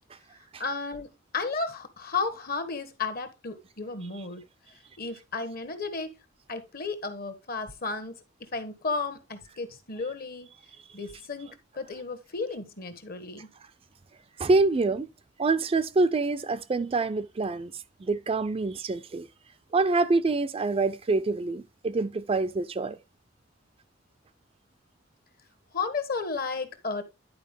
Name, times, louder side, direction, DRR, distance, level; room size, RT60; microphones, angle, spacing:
voice 1, 0.6-4.5 5.0-6.1 6.5-10.5 10.9-13.5 25.7-27.0, left 4 dB, 50° left, 1.2 m, -33 dB
voice 2, 14.4-15.1 15.4-19.3 19.7-23.0, right 3 dB, 30° right, 0.4 m, -26 dB
10.5 x 4.5 x 3.4 m
head